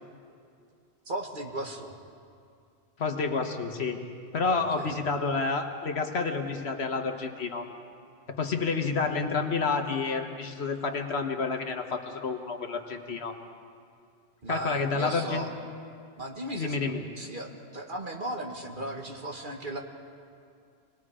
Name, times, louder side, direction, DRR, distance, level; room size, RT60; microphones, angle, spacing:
voice 1, 1.1-2.0 4.5-4.9 7.2-7.3 14.4-15.5 16.2-19.8, right 1 dB, 45° right, 1 dB, 1.9 m, -37 dB
voice 2, 3.0-4.0 4.3-7.7 8.4-13.4 14.5-15.5 16.5-17.0, left 4 dB, 65° left, 5 dB, 1.5 m, -29 dB
27.0 x 20.0 x 5.0 m, 2.4 s
omnidirectional pair, 1.2 m